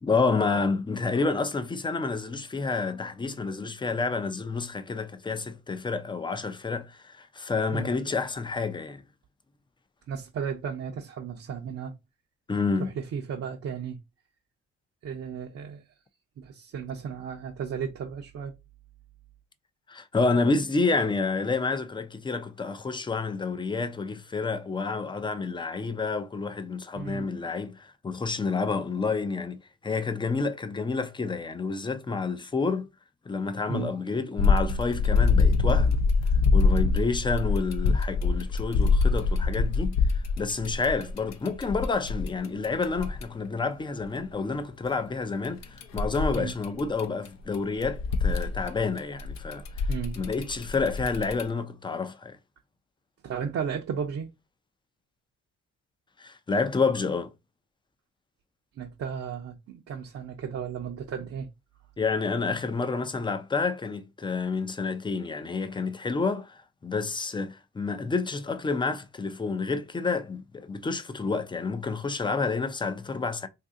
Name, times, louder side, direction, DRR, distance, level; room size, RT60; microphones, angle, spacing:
voice 1, 0.0-9.0 12.5-12.9 19.9-29.6 29.8-32.9 33.3-36.0 36.5-49.9 50.2-52.4 56.2-57.3 62.0-73.5, left 4 dB, 15° left, 0.5 m, -29 dB
voice 2, 10.1-12.0 12.8-14.0 15.0-15.8 16.4-18.5 26.9-27.3 33.7-34.0 46.4-46.5 49.9-50.2 53.2-54.3 58.8-61.5, right 7 dB, 55° right, 0.7 m, -34 dB
sound 1, 34.4-43.2 45.4-47.3 47.5-51.4, left 4 dB, 65° left, 0.6 m, -24 dB
2.7 x 2.6 x 3.6 m
cardioid pair, 90°, 30 cm